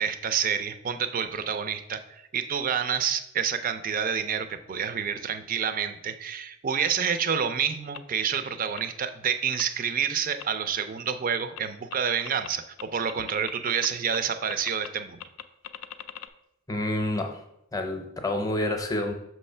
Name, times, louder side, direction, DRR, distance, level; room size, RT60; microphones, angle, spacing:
voice 1, 0.0-15.2, right 7 dB, 40° right, 10 dB, 0.4 m, -28 dB
sound 1, 7.9-8.0 8.8-8.9 9.6-9.7 10.4-10.5 11.1-11.2 11.6-11.7 11.9-12.0 12.2-12.5 12.8-13.9 14.1-14.2 14.5-14.9 15.2-16.3, left 10 dB, 75° left, 0.4 m, -39 dB
voice 2, 16.7-17.4 17.7-19.1, left 1 dB, 15° left, 5 dB, 0.7 m, -28 dB
6.2 x 3.2 x 5.4 m, 0.83 s
head